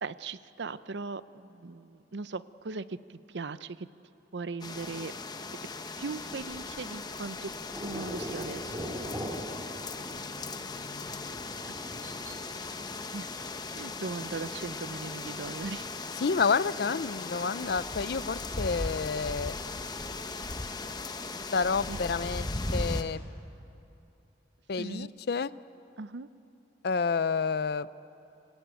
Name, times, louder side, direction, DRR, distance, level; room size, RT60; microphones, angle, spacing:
voice 1, 0.0-3.9 4.3-5.1 6.0-7.5 7.8-8.9 13.1-13.3 13.7-15.9 21.9-22.0 24.8-25.1 26.0-26.3, right 4 dB, 70° right, 15 dB, 0.6 m, -39 dB
sound 1, 4.6-23.0, left 3 dB, 20° left, 0.9 m, -38 dB
sound 2, 7.7-16.5, equal, 15° right, 2.8 m, -43 dB
voice 2, 10.0-11.3 16.2-19.6 21.5-23.2 24.7-25.5 26.8-27.9, left 5 dB, 60° left, 17 dB, 0.5 m, -30 dB
27.0 x 18.0 x 9.1 m, 2.8 s
head